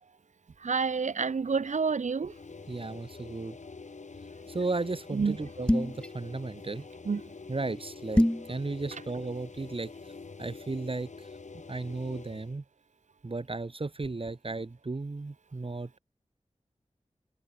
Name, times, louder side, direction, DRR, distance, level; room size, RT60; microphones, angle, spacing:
voice 1, 0.6-2.3 5.1-5.4 7.0-7.2, right 5 dB, 80° right, 0.9 m, -28 dB
sound 1, 2.2-12.6, left 4 dB, 80° left, 3.1 m, -46 dB
voice 2, 2.7-3.6 4.5-6.8 7.5-9.9 10.4-11.3 11.7-12.6 13.2-16.0, right 3 dB, 50° right, 1.6 m, -35 dB
sound 2, 5.7-6.1 8.2-8.5, left 1 dB, 10° left, 1.3 m, -23 dB
wide cardioid pair, 55°, 12 cm